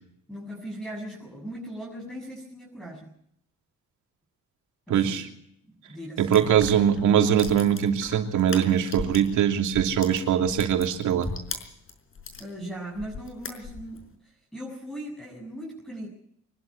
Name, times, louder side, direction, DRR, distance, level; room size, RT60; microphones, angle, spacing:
voice 1, 0.3-3.1 4.9-5.2 5.6-6.5 12.4-16.1, right 1 dB, ahead, -2 dB, 7.1 m, -39 dB
voice 2, 4.9-5.3 6.2-11.3, right 9 dB, 75° right, 4 dB, 3.0 m, -22 dB
sound 1, 6.3-9.4 9.7-12.5 12.9-14.0, left 4 dB, 45° left, 4.8 m, -38 dB
24.5 x 12.0 x 9.8 m, 0.68 s
cardioid pair, 90°, 30 cm